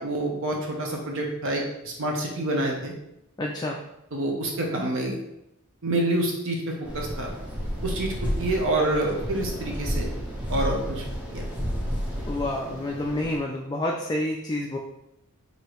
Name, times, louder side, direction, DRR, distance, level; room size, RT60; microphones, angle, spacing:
voice 1, 0.0-2.9 4.1-5.2 5.8-7.3 7.8-10.1 10.5-11.1 11.3-11.4, right 1 dB, 60° right, 0 dB, 0.7 m, -27 dB
voice 2, 3.4-3.8 12.3-14.8, left 1 dB, 20° left, 0 dB, 0.3 m, -28 dB
sound 1, 6.8-13.4, equal, 5° right, 0.8 m, -31 dB
4.8 x 2.7 x 3.0 m, 0.83 s
head